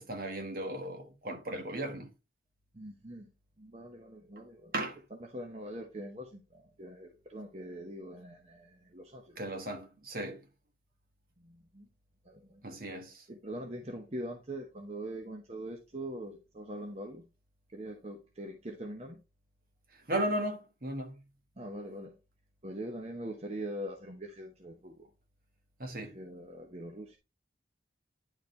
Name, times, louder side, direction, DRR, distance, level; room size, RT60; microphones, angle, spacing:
voice 1, 0.0-2.1 4.7-5.0 9.4-10.4 12.6-13.2 20.1-21.2 25.8-26.2, right 1 dB, 50° right, 1.4 m, -36 dB
voice 2, 2.7-3.3 3.6-9.4 11.4-11.9 12.2-12.6 13.3-17.2 17.7-19.2 21.6-22.2 22.6-25.1 26.0-27.2, right 1 dB, 35° right, 1.0 m, -43 dB
10.0 x 4.4 x 3.3 m
head